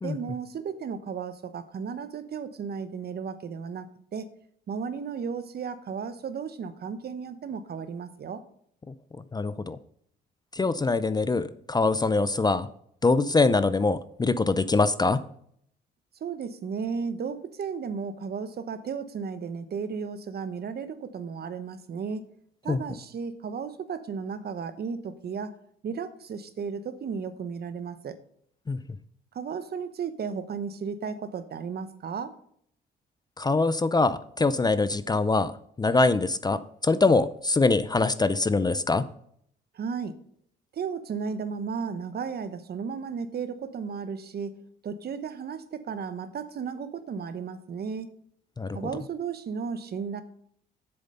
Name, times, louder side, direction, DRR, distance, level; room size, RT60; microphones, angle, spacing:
voice 1, 0.0-3.9 4.1-4.3 4.7-8.4 16.2-22.2 22.6-25.5 25.8-28.2 29.3-32.3 39.7-40.1 40.7-44.6 44.8-48.1 48.7-50.2, right 6 dB, 50° right, 12 dB, 1.0 m, -34 dB
voice 2, 9.3-9.8 10.5-12.7 13.0-15.2 22.7-22.8 28.7-28.8 33.4-35.5 35.8-39.0 48.6-48.8, left 3 dB, 20° left, 14 dB, 0.5 m, -23 dB
7.9 x 7.0 x 5.6 m, 0.66 s
cardioid pair, 90°, 20 cm